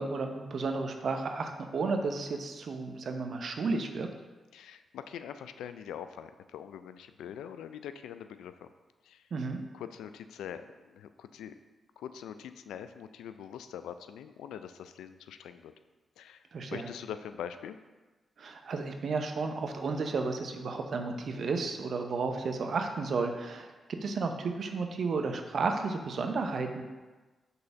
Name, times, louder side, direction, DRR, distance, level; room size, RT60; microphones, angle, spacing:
voice 1, 0.0-4.1 9.3-9.6 16.5-16.9 18.4-26.8, right 4 dB, 65° right, 5 dB, 0.7 m, -32 dB
voice 2, 4.5-8.7 9.0-9.3 9.7-11.6 12.0-15.7 16.2-16.4 16.7-17.8, left 9 dB, 85° left, 10 dB, 0.3 m, -43 dB
5.4 x 4.0 x 5.7 m, 1.2 s
supercardioid pair, 40°, 0 cm